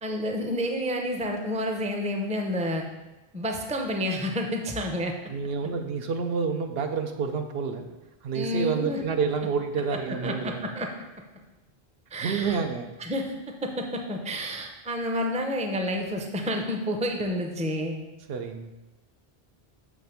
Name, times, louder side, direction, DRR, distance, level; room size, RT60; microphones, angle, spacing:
voice 1, 0.0-2.8 3.3-5.1 8.3-9.0 10.2-10.9 12.1-12.6 13.0-17.9, equal, 10° right, 3 dB, 0.5 m, -29 dB
voice 2, 5.3-7.9 8.2-10.6 12.2-12.9 18.3-18.7, right 5 dB, 70° right, 5 dB, 0.8 m, -29 dB
7.2 x 3.4 x 5.7 m, 1.0 s
omnidirectional pair, 1.1 m